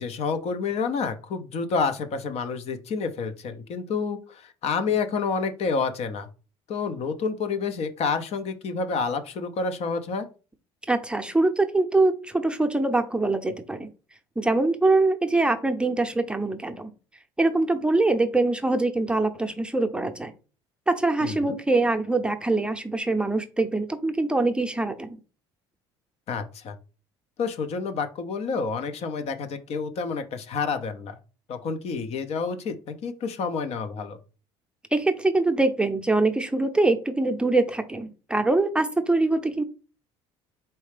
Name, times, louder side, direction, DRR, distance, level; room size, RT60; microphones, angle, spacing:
voice 1, 0.0-6.3 6.7-10.3 21.2-21.6 26.3-26.7 27.4-31.2 31.5-34.2, left 5 dB, 55° left, 8 dB, 0.7 m, -29 dB
voice 2, 10.9-13.9 14.4-16.9 17.4-20.3 20.9-25.2 34.9-39.6, right 2 dB, 10° right, 5 dB, 0.7 m, -23 dB
4.4 x 3.1 x 3.4 m, 0.34 s
hypercardioid pair, 75°, 13 cm